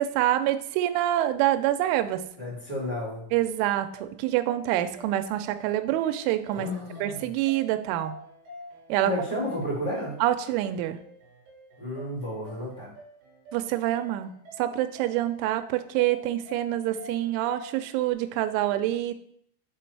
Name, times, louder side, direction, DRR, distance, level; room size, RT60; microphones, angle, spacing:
voice 1, 0.0-2.2 3.3-6.7 7.0-8.1 8.9-9.1 10.2-11.0 13.5-14.3 14.6-19.1, right 13 dB, 85° right, 9 dB, 2.9 m, -26 dB
voice 2, 2.4-3.2 6.5-7.3 9.0-10.2 11.8-12.9, left 1 dB, 15° left, -8 dB, 1.4 m, -32 dB
sound 1, 3.9-18.1, left 2 dB, 65° right, 2.4 m, -48 dB
7.1 x 4.2 x 4.6 m, 0.67 s
omnidirectional pair, 5.6 m